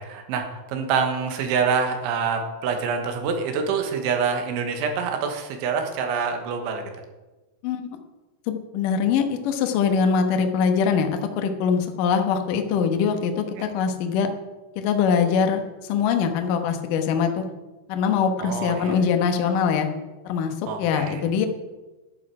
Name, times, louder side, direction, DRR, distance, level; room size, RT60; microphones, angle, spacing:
voice 1, 0.0-6.8 13.6-13.7 18.4-19.0 20.7-21.2, right 5 dB, 85° right, 4 dB, 3.8 m, -26 dB
voice 2, 7.6-8.0 8.5-14.3 14.8-15.6 15.9-17.4 17.9-19.9 20.2-21.5, left 6 dB, 75° left, 5 dB, 2.0 m, -23 dB
12.0 x 11.5 x 4.8 m, 1.2 s
omnidirectional pair, 5.4 m